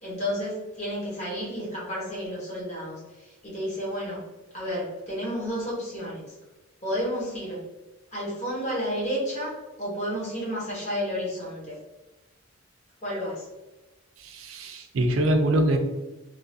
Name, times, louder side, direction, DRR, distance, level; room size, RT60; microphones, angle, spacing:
voice 1, 0.0-4.2 4.5-6.3 6.8-7.6 8.1-11.8 13.0-13.4, equal, 35° left, -5 dB, 1.1 m, -31 dB
voice 2, 14.3-15.8, right 1 dB, 75° right, 5 dB, 0.4 m, -23 dB
2.9 x 2.4 x 2.7 m, 1.1 s
head